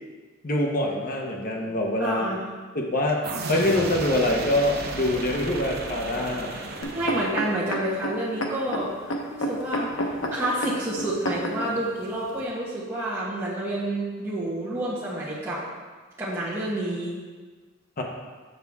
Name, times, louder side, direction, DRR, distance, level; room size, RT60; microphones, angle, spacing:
voice 1, 0.4-2.3 2.7-3.2 3.5-6.5 18.0-18.1, left 1 dB, 45° left, 0 dB, 1.0 m, -25 dB
voice 2, 2.0-2.4 6.9-15.6 16.2-17.1, right 1 dB, 15° right, -10 dB, 1.3 m, -29 dB
sound 1, 3.2-7.9, right 3 dB, 50° right, 0.8 m, -34 dB
sound 2, 6.8-11.7 12.4-12.5, equal, 90° left, 0.9 m, -30 dB
7.0 x 6.7 x 3.5 m, 1.4 s
head